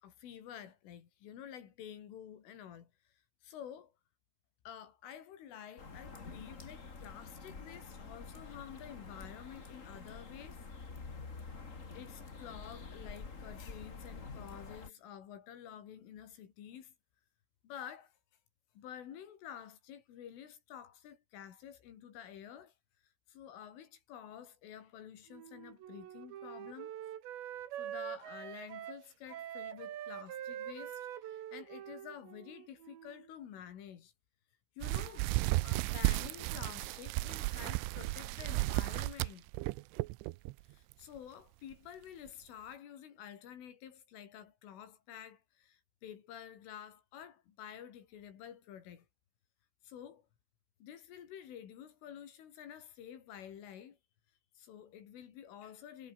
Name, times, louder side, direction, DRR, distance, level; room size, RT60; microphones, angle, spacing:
voice 1, 0.0-2.9 3.4-3.9 4.7-10.6 11.9-16.9 17.6-18.1 18.8-22.7 23.3-26.9 27.8-34.1 34.8-35.3 35.6-39.5 40.7-49.1 49.8-50.3 50.8-54.0 54.6-56.1, left 9 dB, 80° left, 5.5 m, -50 dB
sound 1, 5.8-14.9, left 4 dB, 40° left, 1.0 m, -48 dB
Wind instrument woodwind instrument, 25.3-33.3, right 11 dB, 65° right, 4.2 m, -45 dB
sound 2, 34.8-40.5 40.9-41.2 41.7-41.8 42.3-42.4, right 21 dB, 85° right, 3.1 m, -34 dB
omnidirectional pair, 5.6 m